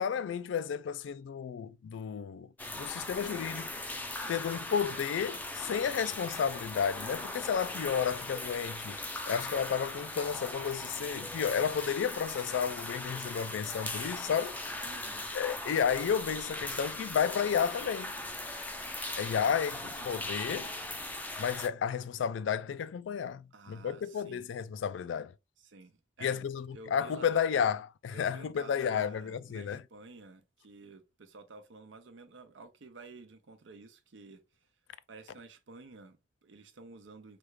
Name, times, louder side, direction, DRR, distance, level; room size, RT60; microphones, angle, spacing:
voice 1, 0.0-3.7 4.3-9.0 9.3-14.6 15.3-18.1 19.2-20.7 21.4-25.3 26.2-29.8, left 7 dB, 85° left, 0.3 m, -32 dB
sound 1, 2.6-21.7, left 2 dB, 10° left, 0.4 m, -39 dB
voice 2, 4.1-4.4 14.8-15.3 19.7-20.9 23.5-24.5 25.6-27.5 28.1-34.4 35.1-37.4, right 3 dB, 85° right, 0.6 m, -52 dB
3.4 x 2.4 x 3.1 m
head